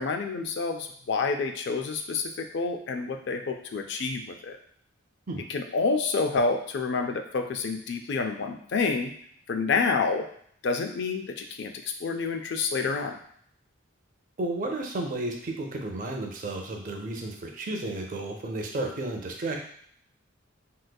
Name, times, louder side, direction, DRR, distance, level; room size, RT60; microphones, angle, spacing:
voice 1, 0.0-4.6 5.5-9.1 9.5-10.3 10.6-11.7 12.0-13.2, left 4 dB, 55° left, 5 dB, 0.4 m, -28 dB
voice 2, 14.4-19.6, right 2 dB, 40° right, 2 dB, 0.5 m, -32 dB
3.8 x 2.6 x 2.2 m, 0.63 s
head